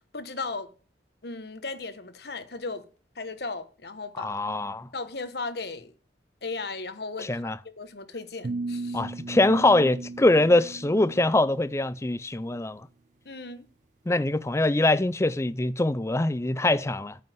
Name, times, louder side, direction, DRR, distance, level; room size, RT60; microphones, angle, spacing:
voice 1, 0.1-0.7 1.2-2.8 3.1-4.4 4.9-5.9 6.4-9.0 13.2-13.7, left 3 dB, 60° left, 1.2 m, -36 dB
voice 2, 4.2-4.9 7.2-7.6 8.9-12.8 14.1-17.2, left 2 dB, 15° left, 0.4 m, -23 dB
sound 1, 8.4-11.6, right 3 dB, 45° right, 0.4 m, -36 dB
9.2 x 5.6 x 7.7 m
head